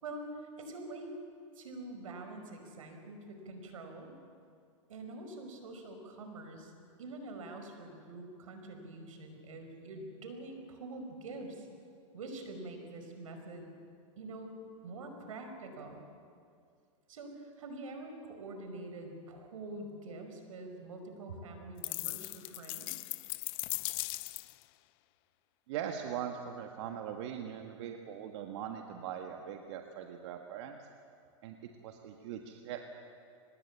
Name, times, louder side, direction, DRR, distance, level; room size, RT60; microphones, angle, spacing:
voice 1, 0.6-1.2 1.5-4.1 4.9-6.7 7.0-11.7 12.1-13.7 14.2-16.0 17.1-23.1, right 2 dB, 90° right, 5 dB, 5.2 m, -45 dB
sound 1, 21.8-24.6, left 23 dB, 45° left, 0.6 m, -38 dB
voice 2, 25.7-30.9 31.4-32.8, right 9 dB, 60° right, 4 dB, 1.7 m, -41 dB
24.5 x 20.0 x 8.5 m, 2.3 s
supercardioid pair, 140°, 17 cm